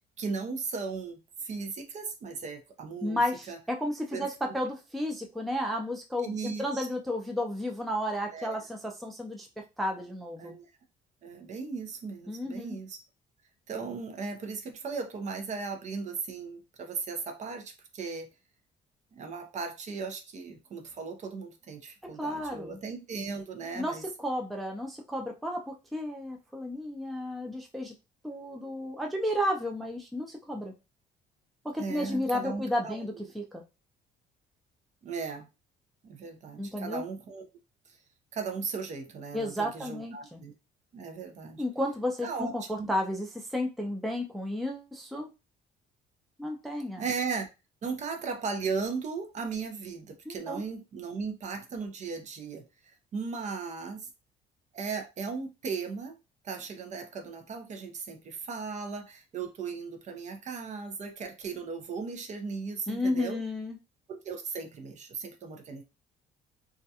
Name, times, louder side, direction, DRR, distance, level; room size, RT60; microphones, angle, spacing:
voice 1, 0.2-3.2 3.5-3.6 4.1-4.5 6.2-6.9 8.3-8.6 10.4-10.7 11.2-13.0 13.7-18.3 19.1-24.0 31.8-33.0 35.0-35.5 36.0-37.5 37.9-38.0 38.3-40.5 40.9-41.6 42.2-42.9 47.0-47.5 47.8-54.1 54.7-56.2 56.4-63.4 64.1-65.8, right 5 dB, 45° right, 6 dB, 0.6 m, -37 dB
voice 2, 3.0-10.5 12.3-12.8 22.2-22.8 23.8-27.9 28.2-30.7 31.6-33.6 36.6-37.0 39.3-40.4 41.6-45.3 46.4-47.0 50.3-50.6 62.9-63.8, left 1 dB, ahead, 2 dB, 0.4 m, -32 dB
2.4 x 2.1 x 2.7 m, 0.27 s
cardioid pair, 110°, 17 cm